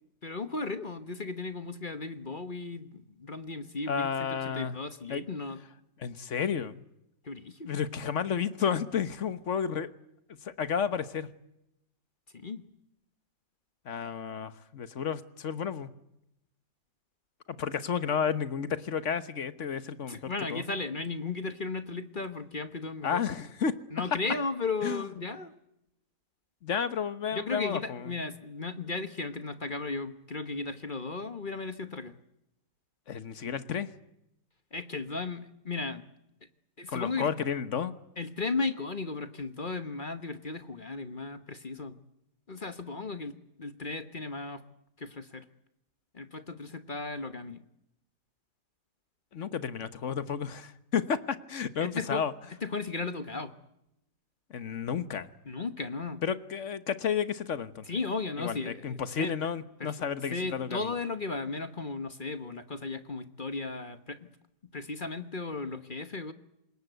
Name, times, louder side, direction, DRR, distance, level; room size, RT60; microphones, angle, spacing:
voice 1, 0.2-5.6 7.2-7.7 12.3-12.7 20.1-23.2 23.9-25.5 27.3-32.1 34.7-36.0 36.8-37.3 38.2-42.0 42.5-44.6 45.0-45.4 46.1-47.6 51.8-52.2 52.6-53.5 55.5-56.2 57.9-59.3 59.8-60.0 60.3-64.3 64.7-66.3, left 3 dB, 35° left, 11 dB, 1.2 m, -35 dB
voice 2, 3.9-4.8 5.1-5.2 6.0-6.8 7.6-9.9 10.4-11.3 13.8-15.9 17.5-20.6 23.0-23.7 24.8-25.1 26.6-28.1 33.1-33.9 36.9-37.9 49.3-52.3 54.5-55.3 56.2-57.8 58.4-60.9, left 7 dB, 50° left, 13 dB, 1.4 m, -32 dB
26.5 x 21.0 x 8.0 m, 0.84 s
omnidirectional pair, 1.8 m